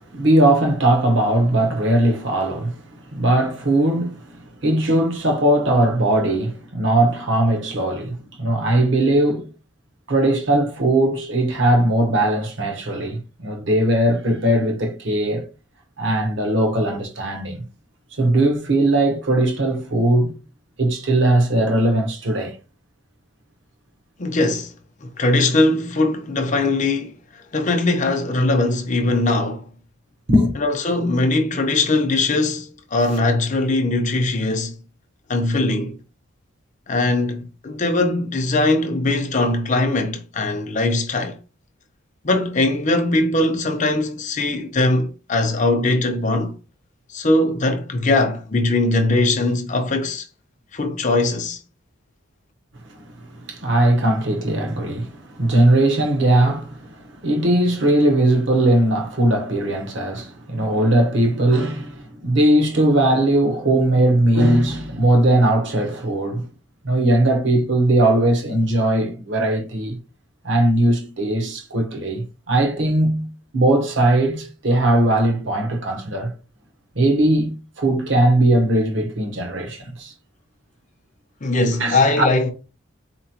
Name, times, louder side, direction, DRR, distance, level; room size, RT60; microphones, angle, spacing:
voice 1, 0.1-2.8 3.1-9.5 10.1-15.5 16.0-17.6 18.2-20.4 20.8-22.5 30.3-30.6 53.3-66.5 66.8-70.0 70.4-76.3 76.9-80.1 81.8-82.0, right 1 dB, 60° right, 0.9 m, -19 dB
voice 2, 24.2-24.7 25.0-29.7 30.6-34.8 35.3-36.0 36.9-41.4 42.2-46.5 47.1-50.3 50.7-51.6 81.4-82.5, left 2 dB, 35° left, 0.6 m, -20 dB
4.3 x 2.9 x 2.8 m
head